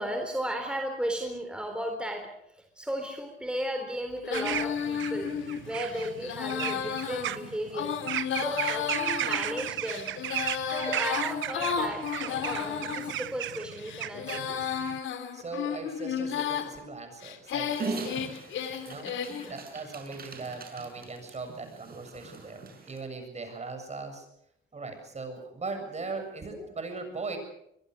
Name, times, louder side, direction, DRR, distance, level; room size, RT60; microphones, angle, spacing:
voice 1, 0.0-10.1 10.6-14.7 19.0-19.6 26.5-26.7, equal, 5° right, 4 dB, 3.9 m, -35 dB
Female singing, 4.2-13.1 13.7-16.7 17.2-19.5, left 8 dB, 80° left, 2.9 m, -33 dB
sound 1, 4.3-15.0, right 13 dB, 75° right, 1.0 m, -35 dB
voice 2, 15.3-18.0 18.9-19.1 19.5-24.3 24.7-27.4, right 3 dB, 35° right, 7 dB, 7.3 m, -39 dB
Dog, 17.7-23.0, right 4 dB, 50° right, 6.0 m, -40 dB
23.0 x 23.0 x 6.5 m, 0.76 s
cardioid pair, 90°, 20 cm